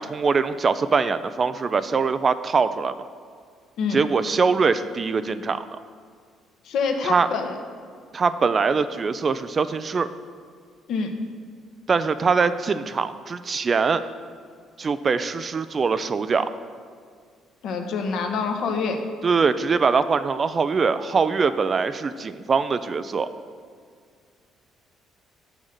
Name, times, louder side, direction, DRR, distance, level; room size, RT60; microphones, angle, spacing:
voice 1, 0.0-2.9 3.9-5.6 7.0-7.3 8.1-10.1 11.9-14.0 14.8-16.5 19.2-23.3, right 5 dB, 30° right, 12 dB, 0.3 m, -22 dB
voice 2, 6.6-7.6 10.9-11.1 17.6-19.0, left 5 dB, 65° left, 4 dB, 1.0 m, -26 dB
6.4 x 6.2 x 7.3 m, 2.1 s
cardioid pair, 140°, 0 cm